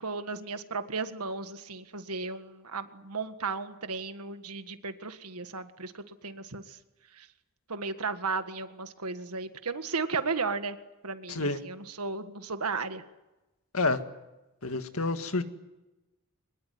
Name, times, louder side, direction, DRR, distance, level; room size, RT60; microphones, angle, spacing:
voice 1, 0.0-6.8 7.2-7.3 7.7-10.8 11.0-13.0, right 4 dB, 85° right, 9 dB, 1.7 m, -35 dB
voice 2, 11.3-11.6 13.7-14.0 14.6-15.4, left 3 dB, 75° left, 8 dB, 1.9 m, -28 dB
23.5 x 21.5 x 9.5 m, 1.0 s
head